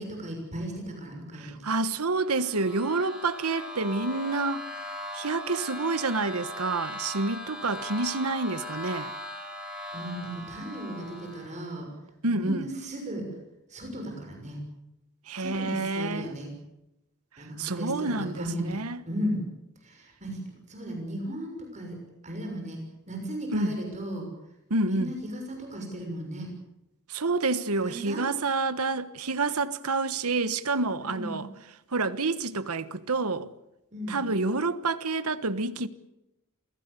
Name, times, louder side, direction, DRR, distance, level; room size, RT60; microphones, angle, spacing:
voice 1, 0.0-1.6 9.9-11.9 12.2-13.3 13.7-14.6 15.4-16.5 17.4-18.7 19.1-19.4 19.8-20.4 20.7-22.0 22.2-24.3 24.9-26.5 27.8-28.2 31.0-31.4 33.9-34.2, equal, 35° right, 6.5 m, -35 dB
voice 2, 1.3-4.8 5.1-9.1 12.2-12.7 15.3-16.3 17.6-19.0 23.5-23.8 24.7-25.2 27.1-31.5 31.9-33.5 34.1-35.9, right 3 dB, 85° right, 1.4 m, -28 dB
sound 1, 2.1-11.7, equal, 5° right, 6.8 m, -39 dB
27.5 x 17.0 x 8.4 m
head